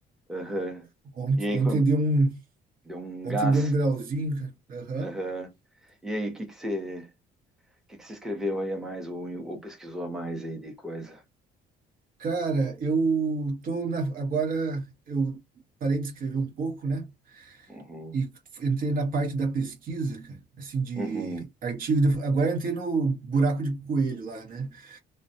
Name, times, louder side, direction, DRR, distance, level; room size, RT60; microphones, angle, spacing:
voice 1, 0.3-0.9 1.4-1.8 2.9-3.7 5.0-5.5 6.0-7.1 7.9-11.2 17.7-18.1 21.0-21.5, equal, ahead, 0.7 m, -33 dB
voice 2, 1.2-2.4 3.2-5.2 12.2-15.4 15.8-17.7 18.1-25.0, right 3 dB, 55° right, 1.0 m, -27 dB
2.2 x 2.1 x 2.6 m
cardioid pair, 110°, 17 cm